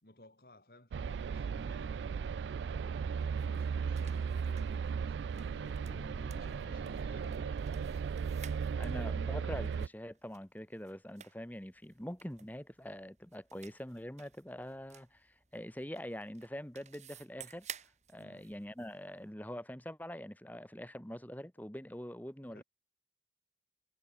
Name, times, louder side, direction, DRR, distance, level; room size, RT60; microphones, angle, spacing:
voice 1, 0.0-6.0 6.3-8.9 18.2-18.5 22.4-22.6, left 1 dB, 55° left, 3.4 m, -60 dB
sound 1, 0.9-9.9, right 6 dB, 85° right, 0.3 m, -36 dB
sound 2, 3.2-19.3, right 9 dB, 40° right, 6.0 m, -56 dB
Bass guitar, 5.9-9.5, equal, 20° right, 5.2 m, -54 dB
voice 2, 8.8-17.7 18.1-22.6, equal, 10° left, 1.6 m, -44 dB
head